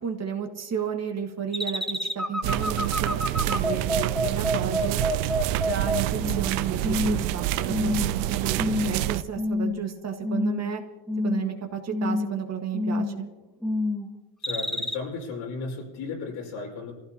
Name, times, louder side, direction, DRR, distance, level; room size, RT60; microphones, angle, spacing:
voice 1, 0.0-3.2 3.5-5.0 5.6-10.8 11.2-13.3, right 7 dB, 35° right, 4 dB, 1.7 m, -32 dB
sound 1, 1.5-6.5 6.8-7.3 7.7-8.2 8.6-9.0 9.4-9.9 10.2-10.8 11.1-11.6 11.9-12.4 12.7-13.3 13.6-14.1 14.4-15.0, left 1 dB, ahead, 0.6 m, -27 dB
sound 2, 2.4-9.2, right 14 dB, 85° right, 0.8 m, -27 dB
voice 2, 14.4-16.9, left 4 dB, 75° left, 0 dB, 5.6 m, -35 dB
26.5 x 15.5 x 2.9 m, 1.2 s
cardioid pair, 120°, 48 cm